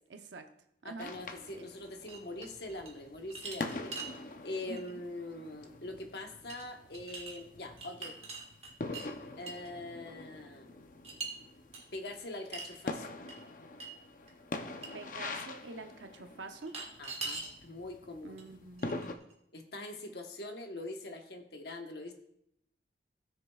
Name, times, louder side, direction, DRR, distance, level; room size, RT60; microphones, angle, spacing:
voice 1, 0.1-0.5 0.8-1.1 1.6-1.7 4.7-5.0 14.9-16.8 18.2-19.3, right 3 dB, 85° right, 6 dB, 0.7 m, -46 dB
voice 2, 0.8-4.2 4.4-8.2 9.4-10.7 11.9-13.2 17.0-18.4 19.5-22.1, left 2 dB, 60° left, 4 dB, 1.1 m, -43 dB
sound 1, 1.0-19.2, left 2 dB, 45° left, 0.6 m, -45 dB
sound 2, 2.1-2.9 3.3-4.1 4.7-4.9 6.5-6.6 6.9-7.4 7.8-9.1 9.5-9.7 11.0-11.3 11.7-11.8 12.5-12.8 13.3-13.4 13.8-13.9 14.3-14.4 14.8-14.9 16.6-17.5 18.4-18.5 18.8-19.3, right 3 dB, 35° right, 1.4 m, -42 dB
17.0 x 6.6 x 2.3 m, 0.76 s
head